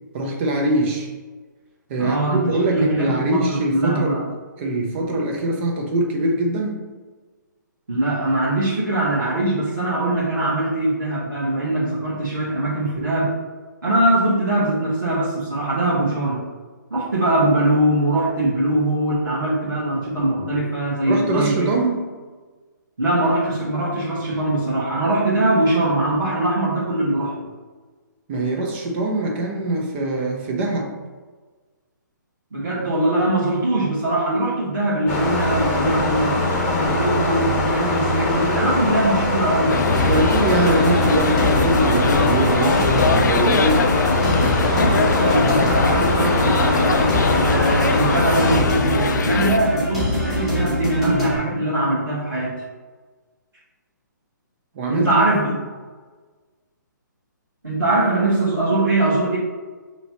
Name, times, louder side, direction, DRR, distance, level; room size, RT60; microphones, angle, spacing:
voice 1, 0.1-1.1 1.9-4.2 4.6-6.9 21.1-22.2 28.3-30.9 38.6-38.8 40.1-43.9 54.7-55.1, right 2 dB, 35° right, 1 dB, 0.8 m, -23 dB
voice 2, 2.0-4.3 7.9-13.4 13.8-16.5 16.9-21.7 23.0-27.4 32.5-36.4 36.7-39.9 44.7-52.6 54.9-55.5 57.6-59.4, right 1 dB, 80° right, -7 dB, 1.2 m, -22 dB
sound 1, 35.1-48.6, left 2 dB, 20° left, 0.9 m, -22 dB
sound 2, 39.7-49.6, left 4 dB, 65° left, 0.4 m, -23 dB
sound 3, 39.9-51.4, left 1 dB, ahead, 1.3 m, -24 dB
5.3 x 2.9 x 2.9 m, 1.4 s
figure-of-eight pair, 135°, 11 cm